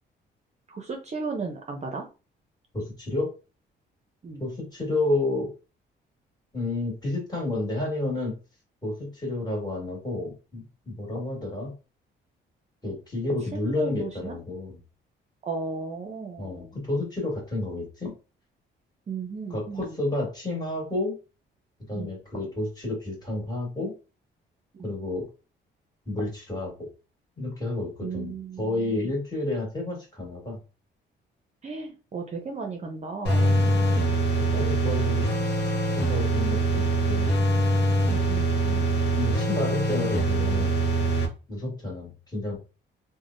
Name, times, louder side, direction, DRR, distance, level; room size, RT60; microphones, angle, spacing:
voice 1, 0.7-2.0 4.2-4.4 13.5-14.4 15.4-16.7 19.1-20.0 21.9-22.1 24.7-24.9 28.0-29.1 31.6-33.5 38.1-38.5, right 4 dB, 35° right, 2 dB, 0.6 m, -35 dB
voice 2, 2.7-3.3 4.4-5.5 6.5-8.3 8.8-11.7 12.8-14.8 16.4-18.1 19.5-21.1 21.9-23.9 24.8-25.3 26.1-26.7 27.4-30.6 33.6-35.3 35.6-37.3 38.6-40.7 41.5-42.6, left 2 dB, 20° left, -3 dB, 1.6 m, -30 dB
sound 1, 33.3-41.3, right 2 dB, 60° left, 0.8 m, -23 dB
3.3 x 2.1 x 2.5 m, 0.32 s
cardioid pair, 90°, 20 cm